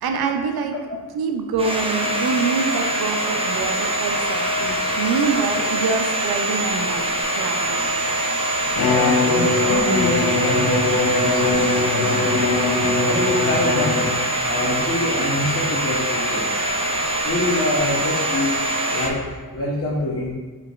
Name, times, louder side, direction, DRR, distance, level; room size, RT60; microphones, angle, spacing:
voice 1, 0.0-0.8 1.1-7.0 7.4-7.8, right 5 dB, 90° right, 4 dB, 0.5 m, -25 dB
Domestic sounds home sounds, 1.6-19.1, right 1 dB, 15° right, 0.5 m, -23 dB
Bowed string instrument, 8.7-14.4, left 3 dB, 85° left, 0.6 m, -22 dB
voice 2, 8.8-12.5 13.0-14.1 14.4-16.6 17.2-18.5 18.9-19.2 19.5-20.3, left 1 dB, 40° left, -5 dB, 0.8 m, -25 dB
4.8 x 3.4 x 2.3 m, 1.4 s
cardioid pair, 75°, 37 cm